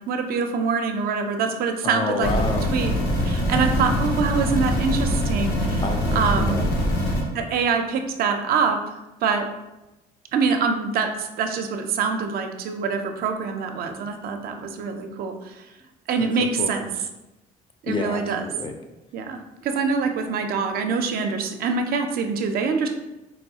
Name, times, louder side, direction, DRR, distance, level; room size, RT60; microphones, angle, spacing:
voice 1, 0.1-2.3 2.7-2.9 3.2-5.8 6.1-6.6 7.3-9.5 10.3-15.6 16.1-16.8 17.8-18.4 19.1-22.9, right 5 dB, 60° right, 5 dB, 0.4 m, -25 dB
voice 2, 1.8-2.7 5.8-6.7 16.4-16.8 17.9-18.8, left 3 dB, 30° left, 5 dB, 0.4 m, -29 dB
sound 1, 2.2-7.2, equal, 85° left, 0.8 m, -23 dB
4.1 x 2.3 x 2.7 m, 1.0 s
cardioid pair, 110°, 17 cm